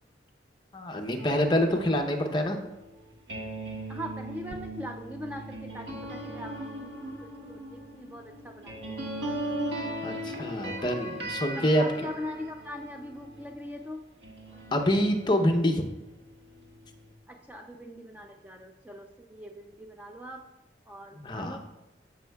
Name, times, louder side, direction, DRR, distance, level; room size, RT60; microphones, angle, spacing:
voice 1, 0.7-2.6 10.0-11.8 14.7-15.9 21.2-21.6, left 1 dB, 25° left, 4 dB, 0.7 m, -26 dB
sound 1, 1.2-13.7 14.2-17.1, right 1 dB, 85° right, 1.6 m, -39 dB
voice 2, 3.9-9.1 11.6-14.0 17.3-20.4 20.9-21.6, left 1 dB, 10° right, 3 dB, 0.4 m, -41 dB
14.0 x 5.5 x 2.3 m, 0.97 s
head